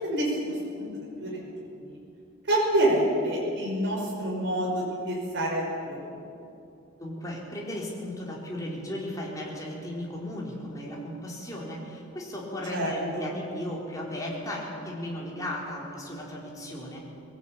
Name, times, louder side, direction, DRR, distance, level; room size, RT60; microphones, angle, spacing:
voice 1, 0.0-1.4 1.8-2.0 2.5-6.1 12.7-13.3, right 1 dB, 55° right, -3 dB, 5.7 m, -27 dB
voice 2, 7.0-17.0, left 1 dB, 15° left, -4 dB, 4.2 m, -35 dB
21.0 x 17.0 x 8.7 m, 2.6 s
head